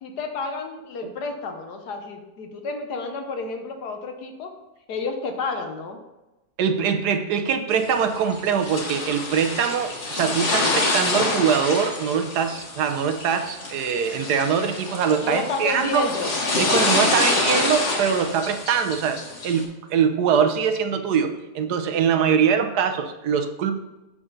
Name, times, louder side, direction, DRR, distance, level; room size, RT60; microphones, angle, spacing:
voice 1, 0.0-4.5 4.9-6.0 15.2-16.3, left 3 dB, 75° left, 5 dB, 1.5 m, -30 dB
voice 2, 6.6-16.1 16.6-23.7, right 7 dB, 75° right, 7 dB, 1.3 m, -23 dB
sound 1, 7.7-19.6, left 2 dB, 45° left, 1.7 m, -26 dB
7.8 x 6.2 x 3.9 m, 1.0 s
omnidirectional pair, 1.7 m